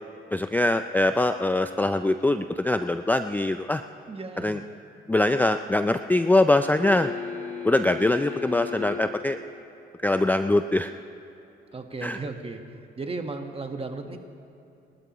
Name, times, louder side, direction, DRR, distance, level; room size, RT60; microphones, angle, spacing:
voice 1, 0.3-3.8 4.4-4.6 5.1-7.1 7.6-9.4 10.0-10.9 12.0-12.2, left 2 dB, 10° left, 9 dB, 0.4 m, -23 dB
voice 2, 4.1-4.6 11.7-12.6 13.0-14.2, right 3 dB, 30° right, 5 dB, 1.4 m, -35 dB
sound 1, 6.8-9.1 11.7-11.8, left 7 dB, 75° left, 3.6 m, -35 dB
28.5 x 12.5 x 3.1 m, 2.9 s
cardioid pair, 90°, 20 cm